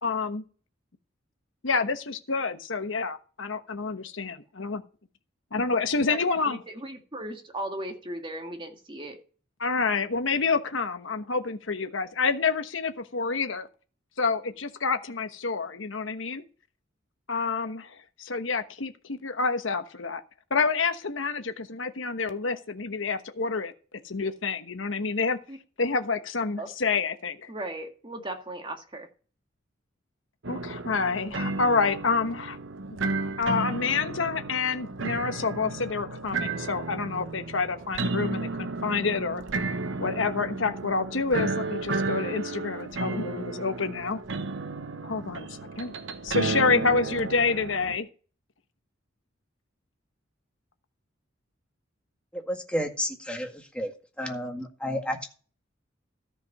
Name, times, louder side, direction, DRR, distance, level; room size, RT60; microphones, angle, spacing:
voice 1, 0.0-0.4 1.6-4.8 5.5-6.6 9.6-13.7 14.2-16.4 17.3-20.2 20.5-23.7 24.0-25.4 25.8-27.5 30.5-32.6 33.4-39.4 40.0-44.2 45.0-45.9 46.2-48.1, left 4 dB, 70° left, 1.1 m, -28 dB
voice 2, 6.5-9.2 25.5-25.6 26.6-26.7 27.5-29.1, right 1 dB, 25° right, 1.8 m, -37 dB
sound 1, 30.4-48.0, right 3 dB, 70° right, 1.0 m, -33 dB
voice 3, 52.3-53.9 54.2-55.3, equal, 5° left, 1.8 m, -31 dB
13.5 x 5.3 x 5.4 m
head